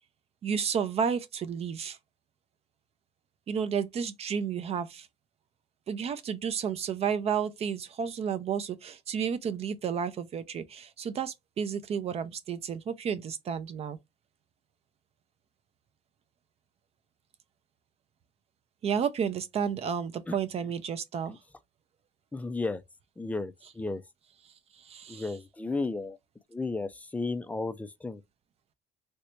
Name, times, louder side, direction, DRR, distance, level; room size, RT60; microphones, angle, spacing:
voice 1, 0.4-2.0 3.5-5.1 5.9-14.0 18.8-21.3 24.8-25.3, right 7 dB, 40° right, 0.5 m, -31 dB
voice 2, 22.3-22.8 23.2-24.0 25.1-26.2 26.5-28.2, left 3 dB, 10° left, 0.4 m, -33 dB
3.3 x 2.7 x 3.1 m
cardioid pair, 130°, 16 cm